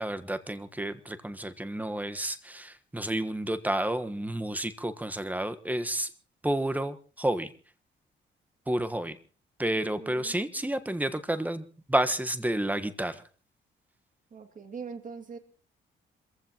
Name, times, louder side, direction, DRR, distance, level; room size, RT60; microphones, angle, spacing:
voice 1, 0.0-6.1 6.4-7.5 8.7-9.2 9.6-13.2, right 1 dB, 10° right, 10 dB, 1.3 m, -30 dB
voice 2, 10.0-10.4 14.3-15.4, right 5 dB, 40° right, 6 dB, 2.5 m, -42 dB
27.5 x 15.5 x 3.0 m, 0.40 s
cardioid pair, 90°, 20 cm